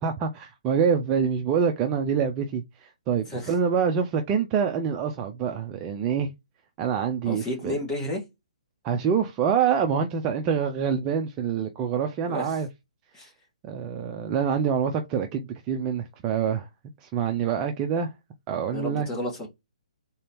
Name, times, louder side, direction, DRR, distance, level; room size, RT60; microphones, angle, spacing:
voice 1, 0.0-6.3 6.8-7.8 8.8-12.7 13.6-16.7 17.0-18.1 18.5-19.1, right 7 dB, 20° right, 0.4 m, -26 dB
voice 2, 7.2-8.2 12.3-12.6 13.1-13.3 18.7-19.5, left 1 dB, 15° left, 1.5 m, -31 dB
3.8 x 2.8 x 3.5 m
hypercardioid pair, 155°, 4 cm